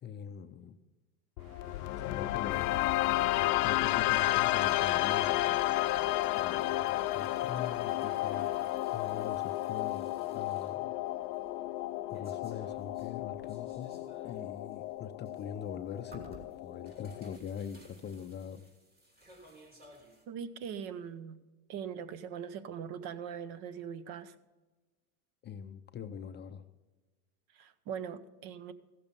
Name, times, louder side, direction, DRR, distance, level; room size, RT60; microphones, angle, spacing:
voice 1, 0.0-0.8 2.0-2.7 3.6-5.6 6.4-8.5 8.9-11.0 12.1-13.9 14.2-18.7 25.4-26.7, left 8 dB, 25° left, 7 dB, 0.5 m, -43 dB
sound 1, 1.4-17.4, left 17 dB, 85° left, 0.6 m, -32 dB
sound 2, 1.4-8.7, right 3 dB, 75° right, 1.6 m, -57 dB
sound 3, 2.5-20.2, right 1 dB, 20° right, 2.9 m, -60 dB
voice 2, 20.3-21.4 21.7-24.3 27.5-28.7, right 7 dB, 55° right, 15 dB, 0.9 m, -41 dB
15.5 x 7.0 x 5.2 m, 1.2 s
supercardioid pair, 115°, 45 cm